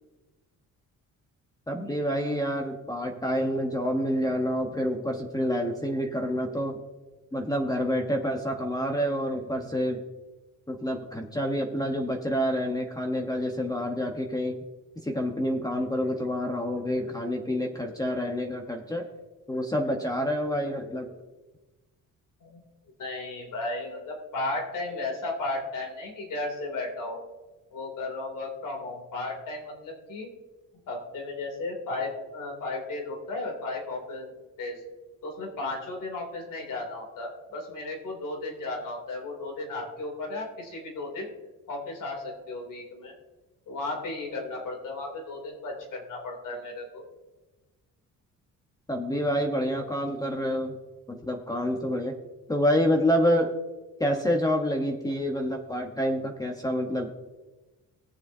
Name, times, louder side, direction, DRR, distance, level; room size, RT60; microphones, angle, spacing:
voice 1, 1.7-6.8 7.3-10.0 10.7-14.6 15.0-19.1 19.5-21.1 48.9-50.7 51.1-52.2 52.5-53.5 54.0-57.1, equal, 10° left, 2 dB, 1.0 m, -28 dB
voice 2, 23.0-27.2 27.7-30.3 30.9-34.3 34.6-34.8 35.2-41.3 41.7-43.1 43.7-47.0, left 2 dB, 70° left, 1 dB, 3.0 m, -34 dB
19.0 x 7.4 x 2.7 m, 1.2 s
cardioid pair, 115°, 33 cm